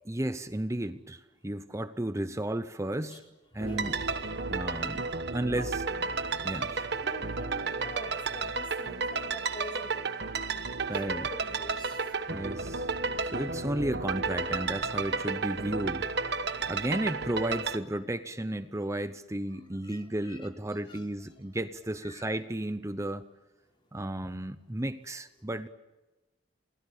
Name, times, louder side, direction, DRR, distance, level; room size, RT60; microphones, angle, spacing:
voice 1, 0.1-3.2 3.5-4.0 4.5-5.8 6.4-6.9 10.9-11.3 12.3-12.9 13.2-23.3 23.9-25.7, right 1 dB, 15° right, 12 dB, 0.8 m, -34 dB
voice 2, 3.5-4.0 5.6-5.7 7.0-10.0 11.0-12.4 19.8-20.5 20.9-21.0 22.0-22.2, equal, 25° left, 1 dB, 4.2 m, -45 dB
sound 1, 3.6-17.8, right 4 dB, 60° right, 1.2 m, -32 dB
28.5 x 21.0 x 8.6 m, 1.1 s
head